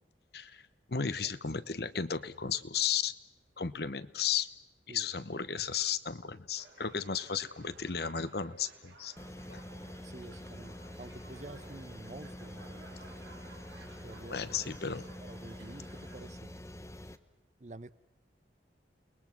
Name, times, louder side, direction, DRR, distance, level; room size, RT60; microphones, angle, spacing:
voice 1, 0.9-3.1 3.6-4.5 4.9-9.1 9.5-9.6 14.3-15.0, left 7 dB, 60° left, 14 dB, 1.0 m, -34 dB
sound 1, 6.5-16.2, right 4 dB, 75° right, 3.9 m, -57 dB
sound 2, 9.2-17.2, left 1 dB, 15° left, 0.9 m, -46 dB
voice 2, 9.8-13.1 14.0-15.0 15.2-16.5 17.6-17.9, right 2 dB, 40° right, 15 dB, 0.8 m, -49 dB
sound 3, 10.3-15.3, right 1 dB, 35° left, 4.6 m, -67 dB
29.5 x 21.0 x 6.0 m, 0.91 s
head